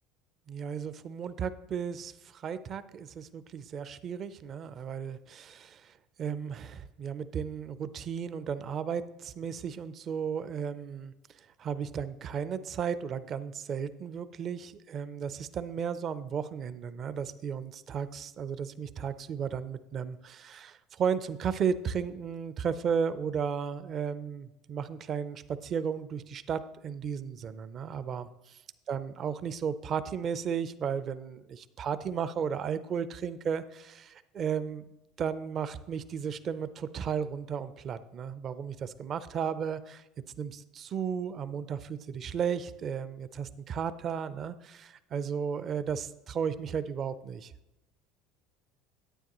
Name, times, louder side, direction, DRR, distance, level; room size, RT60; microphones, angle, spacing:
voice 1, 0.5-28.6 28.9-34.8 35.2-40.0 40.4-47.5, right 7 dB, 45° right, 13 dB, 0.5 m, -34 dB
10.0 x 9.1 x 3.0 m, 0.94 s
supercardioid pair, 90°, 0 cm